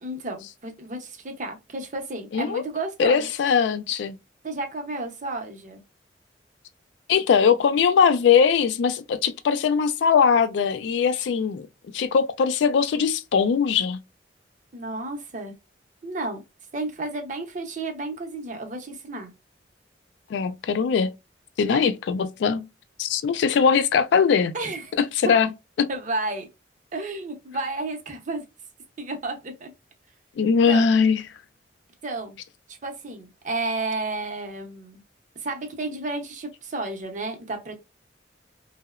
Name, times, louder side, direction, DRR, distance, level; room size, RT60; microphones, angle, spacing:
voice 1, 0.0-3.3 4.4-5.8 14.7-15.5 16.0-16.4 16.7-19.3 21.7-21.8 24.5-24.9 25.2-25.3 25.9-26.5 26.9-28.5 29.0-29.7 30.7-30.9 32.0-32.4 32.7-35.0 35.4-37.8, right 2 dB, 45° right, 0.6 m, -32 dB
voice 2, 2.3-2.6 3.0-4.2 7.1-11.7 11.9-14.0 20.3-21.1 21.6-22.6 23.0-24.5 25.0-25.5 25.8-25.9 30.4-31.2, left 6 dB, 70° left, 0.3 m, -21 dB
2.7 x 2.0 x 2.3 m
head